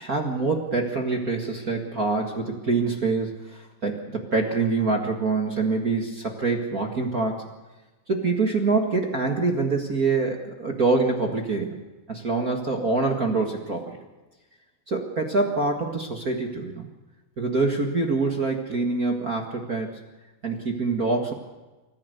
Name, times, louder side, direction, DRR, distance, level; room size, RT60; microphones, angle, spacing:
voice 1, 0.0-7.4 8.1-11.7 12.1-14.0 14.9-16.9 17.4-19.9 20.4-21.3, right 3 dB, 45° right, 2 dB, 1.1 m, -25 dB
26.5 x 15.0 x 6.8 m, 1.2 s
omnidirectional pair, 4.6 m